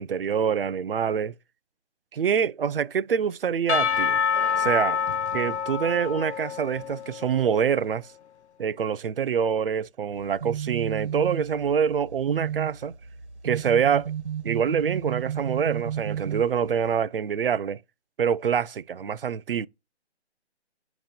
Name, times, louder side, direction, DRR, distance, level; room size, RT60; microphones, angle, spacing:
voice 1, 0.0-1.3 2.1-4.2 4.6-5.0 5.3-8.1 8.6-12.9 13.4-14.1 14.4-17.8 18.2-19.7, right 7 dB, 55° right, 0.5 m, -25 dB
Percussion / Church bell, 3.7-7.6, left 7 dB, 75° left, 0.5 m, -27 dB
sound 1, 10.1-17.0, right 9 dB, 75° right, 1.3 m, -33 dB
7.9 x 3.0 x 5.1 m
hypercardioid pair, 170°, 34 cm